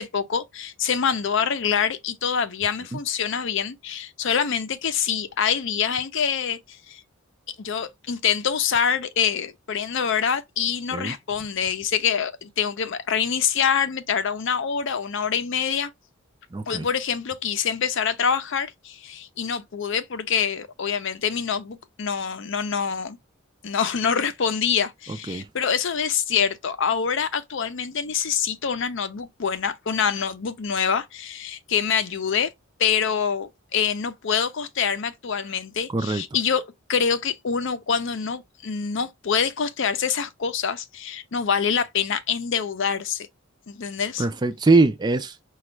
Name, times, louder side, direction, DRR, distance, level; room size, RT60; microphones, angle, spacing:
voice 1, 0.0-6.6 6.9-7.0 7.6-15.9 16.7-23.2 23.6-32.5 32.8-36.6 36.9-43.3 43.7-44.3, left 7 dB, 65° left, 0.6 m, -25 dB
voice 2, 16.5-16.9 25.3-25.5 35.9-36.2 44.2-45.3, right 3 dB, 20° right, 0.4 m, -21 dB
5.1 x 2.3 x 3.0 m
head